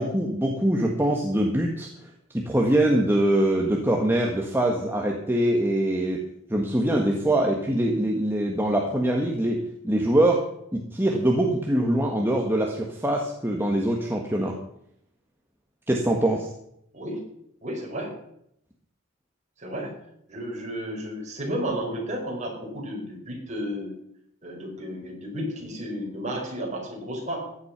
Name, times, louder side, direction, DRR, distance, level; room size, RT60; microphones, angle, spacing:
voice 1, 0.0-1.9 2.3-6.2 6.5-9.6 9.8-10.5 10.7-14.5 15.9-16.5, right 1 dB, 10° right, 0 dB, 1.5 m, -23 dB
voice 2, 17.6-18.1 19.6-19.9 20.3-23.9 24.4-27.5, equal, 35° right, -1 dB, 5.2 m, -32 dB
15.5 x 10.5 x 6.0 m, 0.73 s
head